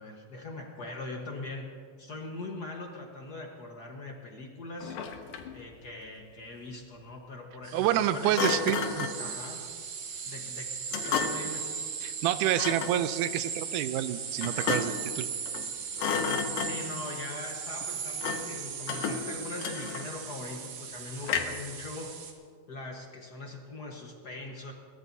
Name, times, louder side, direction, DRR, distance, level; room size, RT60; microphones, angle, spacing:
voice 1, 0.0-1.7 2.0-5.0 5.5-8.4 9.2-9.7 10.2-10.8 11.0-11.7 16.6-22.1 22.7-24.7, left 2 dB, 50° left, 0 dB, 1.2 m, -41 dB
Thump thud, 4.8-5.6 8.3-9.2 10.9-11.6 12.5-13.0 14.4-15.1 15.5-15.7 16.0-17.0 18.2-18.6 18.9-20.3 21.2-21.7, left 6 dB, 85° left, 2.5 m, -32 dB
sound 1, 7.6-22.3, right 6 dB, 70° right, 2.7 m, -38 dB
voice 2, 7.7-9.1 12.0-15.3, right 12 dB, 90° right, 12 dB, 2.1 m, -28 dB
22.0 x 18.0 x 2.7 m, 2.1 s
omnidirectional pair, 3.5 m